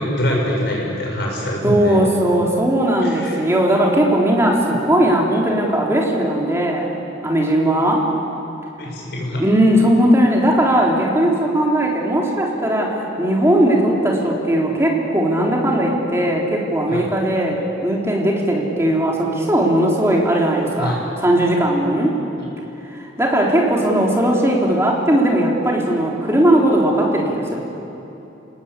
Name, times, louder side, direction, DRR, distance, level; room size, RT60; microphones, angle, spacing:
voice 1, 0.0-2.0 3.0-3.4 8.8-9.4 16.9-17.0 20.8-21.0, left 1 dB, 55° left, -2 dB, 7.4 m, -24 dB
voice 2, 1.6-6.9 7.2-8.1 9.4-21.0 21.2-22.2 22.9-27.6, right 1 dB, 15° right, -2 dB, 3.7 m, -18 dB
28.0 x 19.5 x 8.5 m, 3.0 s
head